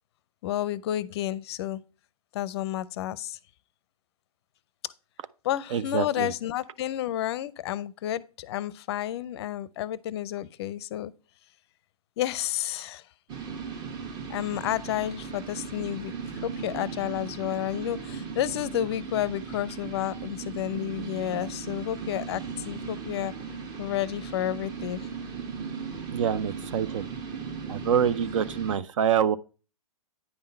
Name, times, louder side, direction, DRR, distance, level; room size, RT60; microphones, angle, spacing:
voice 1, 0.4-1.8 2.3-3.4 4.8-4.9 5.4-11.1 12.2-13.0 14.3-16.1 16.4-23.3 23.8-25.1, left 12 dB, 45° left, 0.5 m, -31 dB
voice 2, 5.7-6.3 26.1-27.0 27.7-29.4, right 8 dB, 55° right, 0.5 m, -26 dB
sound 1, 13.3-28.8, right 5 dB, 25° right, 1.0 m, -37 dB
9.7 x 3.7 x 5.5 m
hypercardioid pair, 130°, 19 cm